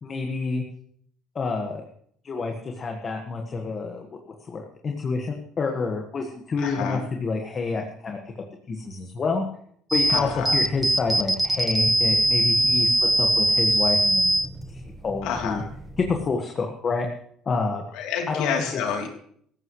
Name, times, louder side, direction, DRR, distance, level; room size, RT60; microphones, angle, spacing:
voice 1, 0.0-0.6 1.4-1.8 2.2-4.1 4.5-8.2 8.7-9.5 9.9-14.3 15.0-15.6 16.0-17.1 17.5-17.8 18.3-18.8, left 4 dB, 30° left, 2 dB, 1.7 m, -28 dB
voice 2, 6.6-7.0 10.1-10.5 15.2-15.6 17.9-19.1, left 7 dB, 80° left, 2 dB, 3.3 m, -28 dB
sound 1, 9.9-16.3, right 1 dB, 10° right, 1.3 m, -23 dB
17.5 x 15.0 x 3.2 m, 0.64 s
cardioid pair, 125°, 0 cm